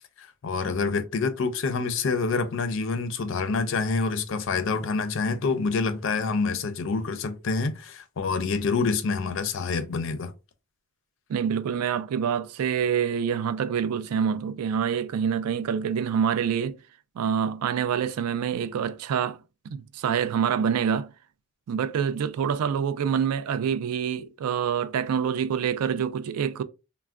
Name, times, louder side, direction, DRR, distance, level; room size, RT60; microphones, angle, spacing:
voice 1, 0.2-10.3, left 4 dB, 60° left, 0.4 m, -27 dB
voice 2, 11.3-16.8 17.2-19.4 19.7-21.1 21.7-26.6, right 7 dB, 90° right, 0.3 m, -26 dB
3.3 x 2.0 x 2.3 m
head